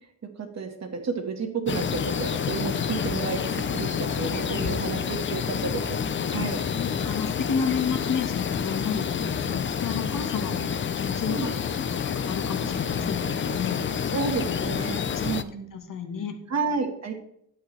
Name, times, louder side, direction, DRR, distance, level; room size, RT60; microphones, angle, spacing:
voice 1, 0.4-6.0 6.3-6.6 11.3-11.5 14.1-15.7 16.5-17.1, right 5 dB, 40° right, 4 dB, 1.6 m, -31 dB
sound 1, 1.7-15.4, left 7 dB, 30° left, 0.5 m, -28 dB
voice 2, 6.8-14.0 15.1-15.2 15.7-16.3, left 6 dB, 55° left, 6 dB, 1.5 m, -31 dB
11.0 x 7.9 x 3.2 m, 0.73 s
cardioid pair, 125°, 39 cm